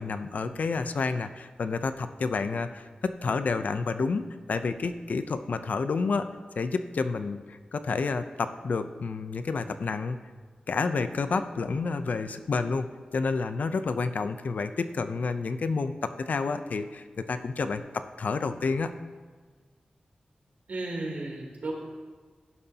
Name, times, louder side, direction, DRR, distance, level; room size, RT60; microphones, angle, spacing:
voice 1, 0.0-6.3 6.6-10.2 10.7-12.9 13.1-18.9, left 4 dB, 70° left, 10 dB, 0.6 m, -29 dB
voice 2, 20.7-21.7, right 2 dB, 75° right, -2 dB, 3.3 m, -34 dB
16.5 x 11.0 x 2.9 m, 1.5 s
wide cardioid pair, 110°, 3 cm